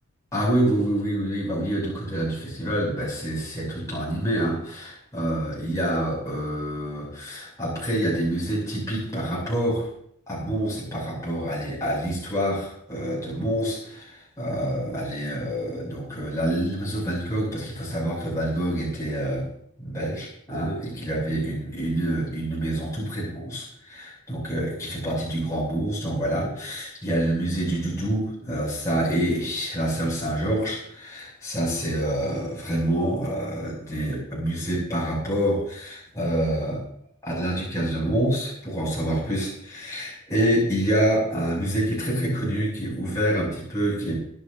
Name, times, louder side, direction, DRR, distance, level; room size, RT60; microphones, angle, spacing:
voice 1, 0.3-9.9 10.3-19.5 19.8-36.8 37.2-44.2, right 1 dB, 15° left, -6 dB, 8.0 m, -27 dB
25.5 x 11.0 x 2.9 m, 0.67 s
head